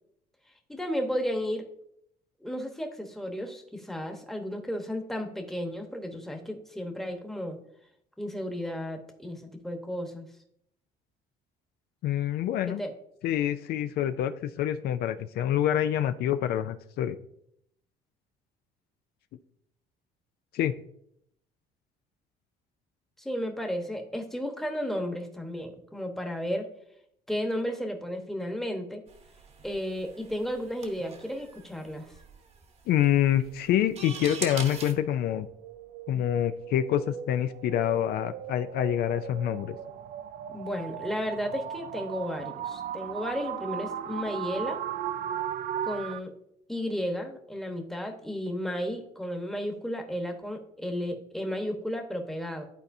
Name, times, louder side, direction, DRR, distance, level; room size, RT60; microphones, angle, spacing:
voice 1, 0.7-1.6 2.4-7.6 8.2-10.3 12.7-12.9 23.2-26.6 27.3-29.0 29.6-32.1 40.5-44.8 45.8-46.3 46.7-52.7, equal, ahead, 3 dB, 1.0 m, -33 dB
voice 2, 12.0-12.8 13.2-17.2 20.5-20.8 32.9-35.5 36.1-39.8, left 11 dB, 70° left, 11 dB, 0.4 m, -26 dB
sound 1, 29.1-34.9, right 5 dB, 40° right, 1.0 m, -42 dB
sound 2, 33.0-46.2, right 10 dB, 60° right, 0.4 m, -38 dB
11.5 x 4.2 x 2.6 m, 0.73 s
cardioid pair, 110°, 17 cm